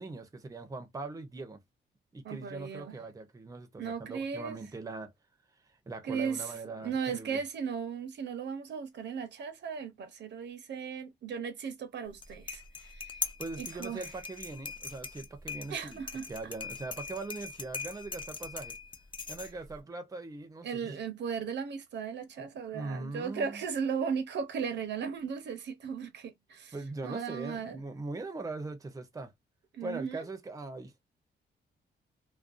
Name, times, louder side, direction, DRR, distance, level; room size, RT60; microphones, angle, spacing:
voice 1, 0.0-1.6 2.1-5.1 5.6-7.4 13.4-16.0 16.3-18.8 19.3-21.0 22.7-23.6 26.7-29.3 29.8-30.9, right 3 dB, 20° right, 0.6 m, -41 dB
voice 2, 2.2-3.0 3.8-4.6 6.0-6.5 6.8-13.1 13.6-14.1 15.7-16.3 20.6-26.7 27.0-27.8 29.7-30.3, right 6 dB, 70° right, 0.7 m, -36 dB
sound 1, 12.1-19.8, left 4 dB, 25° left, 0.5 m, -41 dB
2.5 x 2.2 x 2.4 m
cardioid pair, 110°, 19 cm